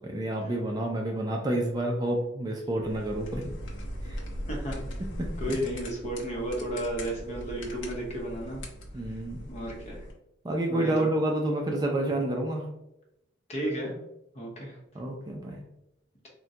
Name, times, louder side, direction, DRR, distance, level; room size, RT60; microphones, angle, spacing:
voice 1, 0.0-3.5 4.0-4.2 5.0-5.6 8.9-9.4 10.4-12.7 14.9-15.6, right 1 dB, 20° right, 1 dB, 0.3 m, -29 dB
sound 1, 2.8-10.1, equal, 80° left, 0.6 m, -39 dB
voice 2, 5.4-8.6 9.5-10.1 10.7-11.1 13.5-13.9 14.3-14.8, right 1 dB, 35° left, -2 dB, 0.8 m, -33 dB
3.6 x 2.1 x 2.7 m, 0.84 s
head